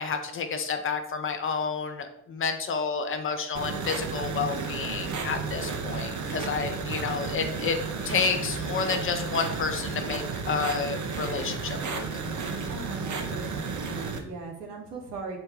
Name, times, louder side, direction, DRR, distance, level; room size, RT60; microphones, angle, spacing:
voice 1, 0.0-7.8 8.0-12.0, left 5 dB, 30° left, 6 dB, 0.5 m, -30 dB
sound 1, 3.5-14.2, right 4 dB, 40° right, 0.8 m, -32 dB
voice 2, 12.7-15.4, right 3 dB, 85° right, 0 dB, 1.0 m, -39 dB
4.2 x 2.1 x 3.5 m, 0.77 s
hypercardioid pair, 55°, 46 cm